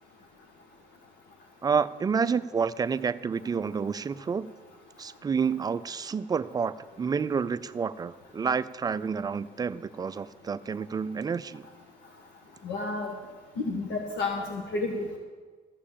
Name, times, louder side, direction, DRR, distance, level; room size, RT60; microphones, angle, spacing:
voice 1, 1.6-4.5 5.0-11.7, right 6 dB, 25° right, 13 dB, 0.4 m, -29 dB
voice 2, 12.6-13.1 13.7-15.2, left 3 dB, 75° left, 0 dB, 1.5 m, -31 dB
14.5 x 6.6 x 7.3 m, 1.4 s
cardioid pair, 110°, 17 cm